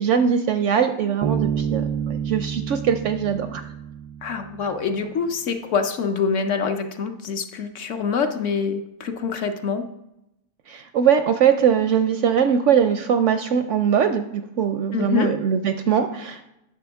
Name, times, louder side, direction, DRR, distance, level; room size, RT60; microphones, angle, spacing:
voice 1, 0.0-3.6 10.7-16.5, right 8 dB, 70° right, 8 dB, 0.8 m, -21 dB
Bass guitar, 1.2-4.7, right 8 dB, 85° right, 1.1 m, -28 dB
voice 2, 4.2-9.8 14.9-15.3, left 5 dB, 60° left, 7 dB, 0.9 m, -25 dB
10.5 x 6.8 x 3.5 m, 0.86 s
omnidirectional pair, 1.6 m